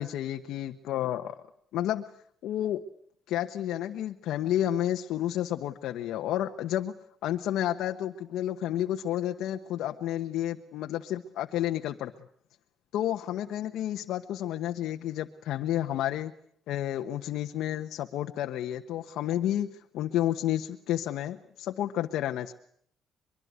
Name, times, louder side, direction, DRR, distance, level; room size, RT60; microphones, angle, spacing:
voice 1, 0.0-1.4 1.7-2.0 2.4-2.8 3.3-6.9 7.2-12.1 12.9-16.3 16.7-19.7 19.9-22.5, left 12 dB, 80° left, 5 dB, 1.2 m, -31 dB
23.5 x 23.0 x 9.5 m, 0.66 s
cardioid pair, 150°, 0 cm